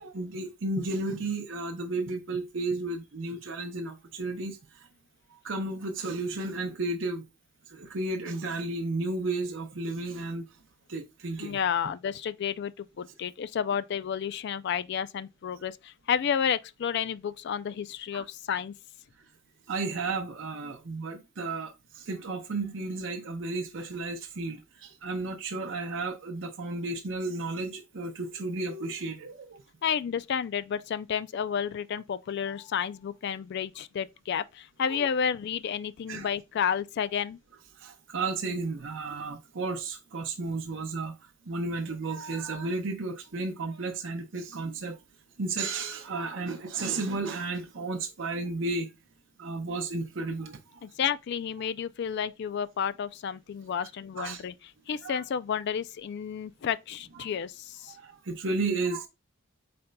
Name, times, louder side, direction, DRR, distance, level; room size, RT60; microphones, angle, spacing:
voice 1, 0.0-4.9 5.3-7.2 7.7-10.4 10.9-11.6 18.1-18.2 19.7-29.6 34.8-35.1 36.1-36.3 37.8-41.2 41.5-45.0 45.4-48.9 49.4-50.8 54.2-54.4 55.0-55.2 57.2-57.3 57.9-59.1, right 3 dB, 60° right, 0.7 m, -33 dB
voice 2, 11.4-18.7 29.8-37.4 50.8-58.0, left 7 dB, 50° left, 0.3 m, -31 dB
5.1 x 4.2 x 2.2 m
head